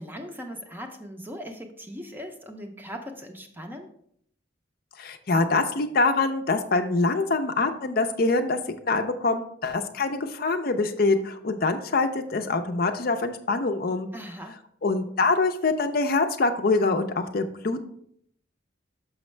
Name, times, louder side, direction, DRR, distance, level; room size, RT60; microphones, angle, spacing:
voice 1, 0.0-3.9 14.1-14.6, equal, 10° right, 4 dB, 0.6 m, -39 dB
voice 2, 5.0-8.6 8.8-14.1 14.8-17.8, left 3 dB, 50° left, 7 dB, 0.5 m, -24 dB
6.2 x 6.1 x 3.2 m, 0.68 s
head